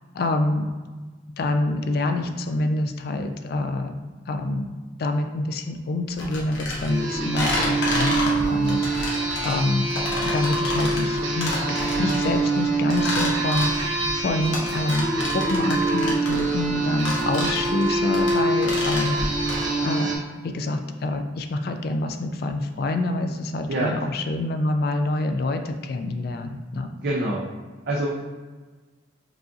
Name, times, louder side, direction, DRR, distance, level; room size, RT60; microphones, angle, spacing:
voice 1, 0.1-0.7 1.4-3.9 4.3-4.7 5.0-9.9 10.2-11.6 12.0-26.9, left 2 dB, 55° left, 6 dB, 0.3 m, -26 dB
sound 1, 6.2-19.7, left 2 dB, 85° left, 1.0 m, -30 dB
sound 2, 6.8-20.2, right 2 dB, 85° right, 0.7 m, -25 dB
voice 2, 27.0-27.5 27.9-28.2, right 1 dB, 55° right, -4 dB, 0.5 m, -25 dB
4.7 x 2.5 x 2.6 m, 1.3 s
head